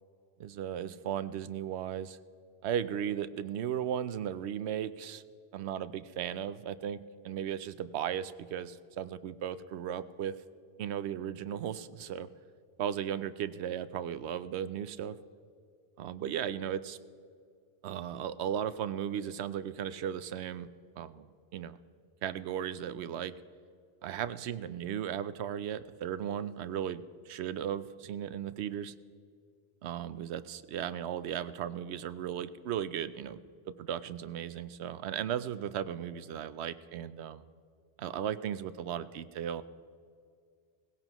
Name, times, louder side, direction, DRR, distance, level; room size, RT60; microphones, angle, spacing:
voice 1, 0.4-2.2 2.6-5.2 5.5-10.4 10.8-12.3 12.8-15.2 16.0-17.0 17.8-20.7 21.0-21.8 22.2-23.3 24.0-28.9 29.8-33.4 33.8-37.4 38.0-39.6, right 9 dB, 75° right, 14 dB, 0.8 m, -36 dB
19.0 x 16.5 x 3.0 m, 2.3 s
omnidirectional pair, 1.2 m